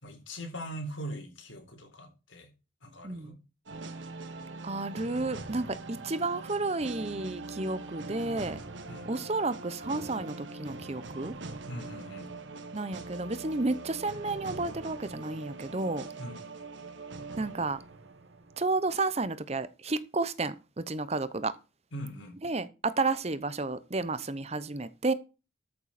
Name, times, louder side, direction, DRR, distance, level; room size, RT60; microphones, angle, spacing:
voice 1, 0.0-2.5 2.8-3.4 8.9-9.1 11.7-12.3 16.2-16.4 21.9-22.4, equal, 80° left, 3.8 m, -41 dB
sound 1, 3.7-18.9, right 3 dB, 75° right, 1.6 m, -42 dB
voice 2, 4.6-8.6 9.1-11.3 12.7-16.1 17.4-17.8 18.6-21.5 22.4-25.1, right 3 dB, 35° right, 0.8 m, -31 dB
13.5 x 7.2 x 4.3 m
head